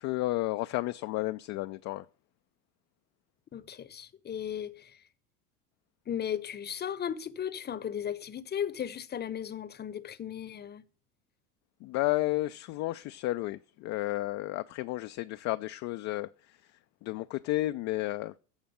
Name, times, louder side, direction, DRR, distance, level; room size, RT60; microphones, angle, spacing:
voice 1, 0.0-2.1 11.8-16.7 17.0-18.3, left 17 dB, 40° left, 0.5 m, -32 dB
voice 2, 3.5-5.0 6.1-10.8, left 9 dB, 20° left, 0.9 m, -36 dB
14.5 x 5.0 x 8.6 m
hypercardioid pair, 80°, 47 cm